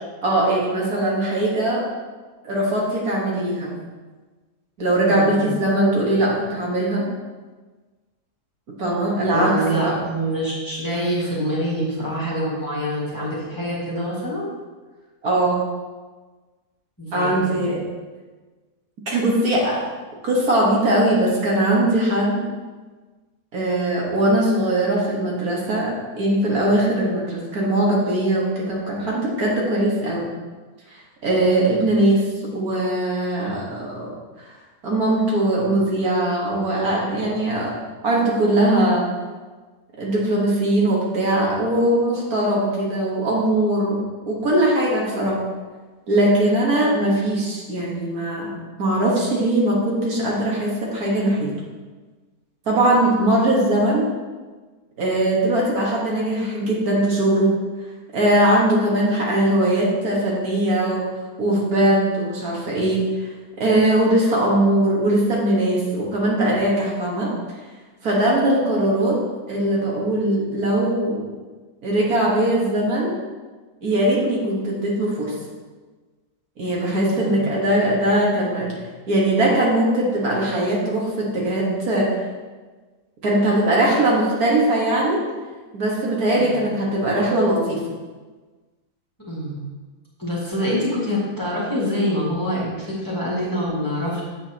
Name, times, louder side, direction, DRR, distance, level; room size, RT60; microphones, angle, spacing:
voice 1, 0.2-1.9 2.4-3.7 4.8-7.0 8.8-9.9 15.2-15.6 17.1-17.8 19.1-19.8 20.2-22.5 23.5-30.2 30.9-34.5 34.8-37.7 38.0-39.1 40.0-44.0 44.3-45.4 46.1-48.5 48.8-51.5 52.7-54.1 55.0-57.5 58.1-61.0 61.4-63.3 63.6-67.3 68.0-69.2 69.5-71.2 71.8-73.1 73.8-75.3 76.6-78.7 79.1-82.1 83.2-85.2 85.7-87.8, right 1 dB, 65° right, -4 dB, 2.0 m, -20 dB
voice 2, 5.1-5.5 9.3-14.5 17.0-17.6 77.1-77.5 86.3-86.6 89.3-89.6 90.2-94.2, equal, 10° left, -7 dB, 1.8 m, -25 dB
8.0 x 7.3 x 2.9 m, 1.3 s
omnidirectional pair, 1.7 m